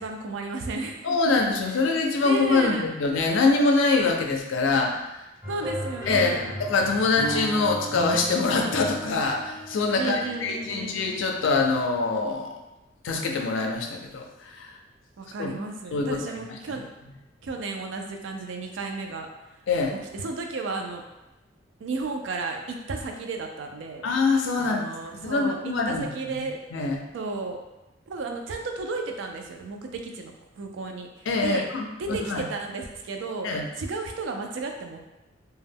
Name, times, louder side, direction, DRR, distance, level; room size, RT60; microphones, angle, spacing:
voice 1, 0.0-1.1 2.2-2.9 5.5-6.5 9.9-11.0 15.2-16.8 17.4-19.3 19.9-21.0 21.8-24.1 24.6-26.6 27.1-27.6 28.1-31.1 31.4-31.7 32.0-33.5 33.8-35.1, right 3 dB, 75° right, 3 dB, 0.4 m, -33 dB
voice 2, 1.0-5.1 6.1-12.5 13.0-14.7 15.4-15.5 15.9-16.8 19.7-20.0 24.0-24.8 25.2-26.5 26.7-27.0 31.3-32.5 33.4-33.7, left 3 dB, 80° left, 2 dB, 0.4 m, -24 dB
sound 1, 5.4-11.0, right 1 dB, 15° right, 1.1 m, -35 dB
2.2 x 2.1 x 3.4 m, 0.99 s
head